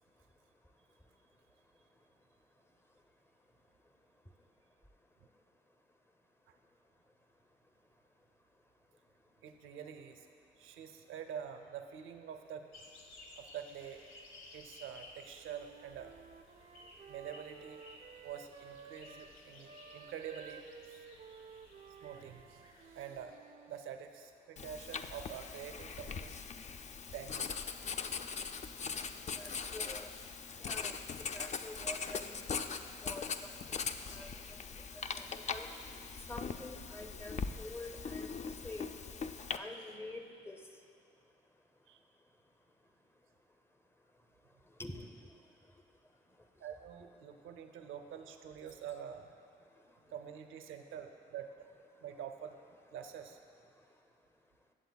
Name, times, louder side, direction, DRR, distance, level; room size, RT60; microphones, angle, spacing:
voice 1, 9.4-10.3 10.6-12.9 13.4-14.0 14.5-16.2 17.1-17.8 18.2-21.1 22.0-23.4 23.7-26.4 27.1-27.6 41.9-42.0 46.6-49.3 50.1-51.7 52.0-52.6 52.9-53.4, right 8 dB, 90° right, 7 dB, 0.6 m, -47 dB
sound 1, 12.7-23.2, left 2 dB, 85° left, 1.1 m, -57 dB
Wind instrument woodwind instrument, 15.4-19.4 19.6-23.9, right 7 dB, 40° right, 0.4 m, -55 dB
Writing, 24.6-39.6, left 5 dB, 35° left, 0.4 m, -41 dB
voice 2, 29.3-30.1 30.6-30.9 31.3-32.6 33.0-33.8 34.1-34.6 35.2-35.7 36.3-38.4 38.6-38.9 39.5-40.6 44.8-45.3, left 2 dB, 10° left, 5 dB, 0.7 m, -47 dB
15.5 x 7.7 x 2.3 m, 2.3 s
cardioid pair, 90°, 20 cm